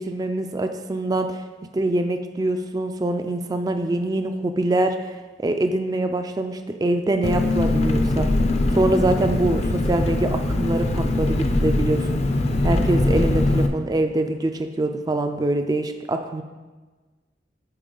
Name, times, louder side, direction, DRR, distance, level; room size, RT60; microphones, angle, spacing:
voice 1, 0.0-1.4 1.7-8.4 8.7-12.2 12.6-16.4, right 2 dB, 20° right, 7 dB, 0.3 m, -24 dB
Engine, 7.2-13.7, left 2 dB, 40° left, 0.5 m, -21 dB
10.0 x 4.2 x 3.8 m, 1.3 s
head